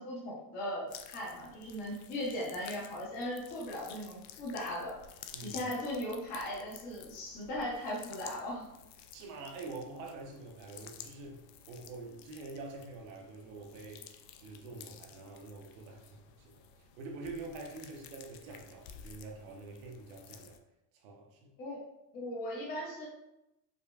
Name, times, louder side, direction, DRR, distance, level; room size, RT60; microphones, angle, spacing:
voice 1, 0.0-5.0 5.4-8.7 21.6-21.8 22.1-23.1, left 1 dB, 20° left, -4 dB, 0.5 m, -38 dB
sound 1, 0.9-20.6, left 8 dB, 90° left, 0.5 m, -53 dB
voice 2, 5.3-5.6 9.1-20.6 20.9-21.5, right 3 dB, 55° right, 2 dB, 0.8 m, -46 dB
5.0 x 2.2 x 2.3 m, 0.88 s
supercardioid pair, 170°, 47 cm